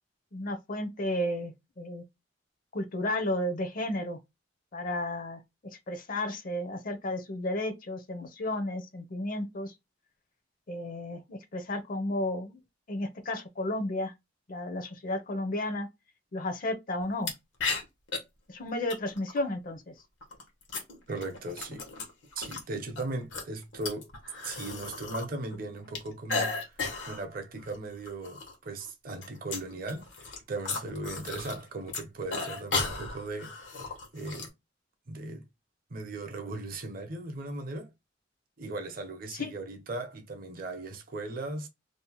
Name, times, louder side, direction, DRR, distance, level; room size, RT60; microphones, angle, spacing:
voice 1, 0.3-2.0 2.7-4.2 4.7-5.4 5.9-9.7 10.7-12.6 12.9-14.1 14.5-15.9 16.3-17.3 18.5-19.9 39.3-39.5, left 1 dB, 50° left, 0.6 m, -33 dB
sound 1, 17.2-17.3 17.6-18.2 18.9-19.4 20.2-22.6 23.0-25.3 25.5-27.2 27.6-27.8 28.1-28.6 28.8-31.6 31.9-34.5, left 4 dB, 90° left, 1.0 m, -35 dB
voice 2, 21.1-21.9 22.4-24.1 24.4-26.8 27.1-33.8 34.1-34.5 35.1-35.4 35.9-37.9 38.6-41.7, right 2 dB, 50° right, 0.6 m, -38 dB
2.7 x 2.1 x 2.9 m
head